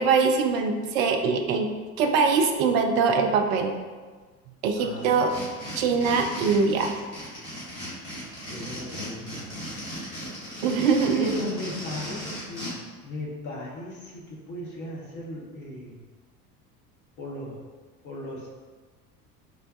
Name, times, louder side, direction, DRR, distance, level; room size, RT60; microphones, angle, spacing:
voice 1, 0.0-1.7 2.0-3.7 4.6-5.3 5.7-7.0 10.6-11.3, right 5 dB, 55° right, 5 dB, 0.5 m, -22 dB
voice 2, 4.8-5.2 5.8-6.1 8.4-9.6 10.2-10.3 11.1-16.0 17.2-17.6 18.0-18.5, left 1 dB, 35° left, -3 dB, 1.0 m, -37 dB
sound 1, 5.0-12.7, equal, 80° left, 1.3 m, -37 dB
4.7 x 2.2 x 2.5 m, 1.4 s
figure-of-eight pair, 65°, 49 cm